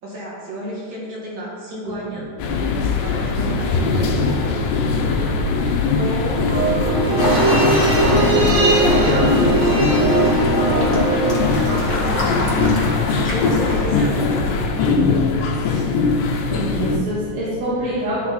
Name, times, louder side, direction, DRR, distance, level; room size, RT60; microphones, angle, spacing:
voice 1, 0.0-2.3 3.0-4.1 5.9-6.5 7.0-10.3 11.9-12.8 13.2-14.6, equal, 45° right, -5 dB, 2.2 m, -31 dB
voice 2, 1.8-2.2 15.5-15.8 16.5-18.3, right 1 dB, 80° right, -10 dB, 3.1 m, -26 dB
sound 1, 2.4-17.0, left 4 dB, 80° left, 2.1 m, -20 dB
sound 2, 6.5-13.1 13.4-13.5, right 2 dB, 65° right, 1.1 m, -20 dB
sound 3, 7.2-13.8, equal, 30° left, 1.0 m, -28 dB
12.0 x 4.4 x 4.1 m, 2.3 s
omnidirectional pair, 3.7 m